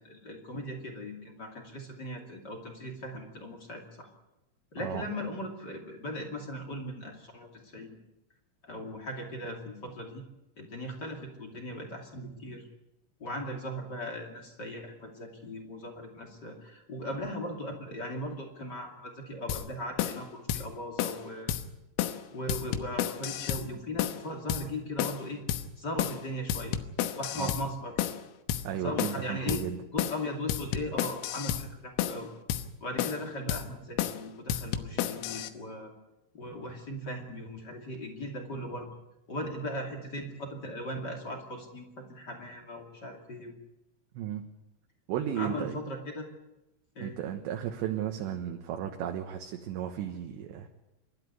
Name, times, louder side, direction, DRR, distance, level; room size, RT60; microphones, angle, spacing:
voice 1, 0.0-4.1 4.7-8.0 8.6-10.2 10.6-12.7 13.2-21.5 22.3-25.4 25.8-26.8 27.2-28.0 28.7-29.6 29.9-32.3 32.8-35.9 36.3-38.9 39.3-43.5 45.3-46.3 46.9-47.2, equal, 35° left, 2 dB, 1.8 m, -38 dB
sound 1, 19.5-19.7 20.0-20.2 20.5-20.7 21.0-21.2 21.5-21.6 22.0-22.2 22.5-23.7 24.0-24.2 24.5-24.7 25.0-25.2 25.5-25.7 26.0-26.2 26.5-27.7 28.0-28.2 28.5-28.7 29.0-29.2 29.5-29.7 30.0-30.2 30.5-31.7 32.0-32.2 32.5-32.7 33.0-33.2 33.5-33.7 34.0-34.2 34.5-35.5, left 11 dB, 90° left, 3.8 m, -31 dB
voice 2, 28.6-29.8 44.1-44.4 45.1-45.8 47.0-50.7, right 10 dB, 70° right, 4 dB, 3.1 m, -34 dB
27.0 x 12.5 x 9.5 m, 0.96 s
omnidirectional pair, 5.9 m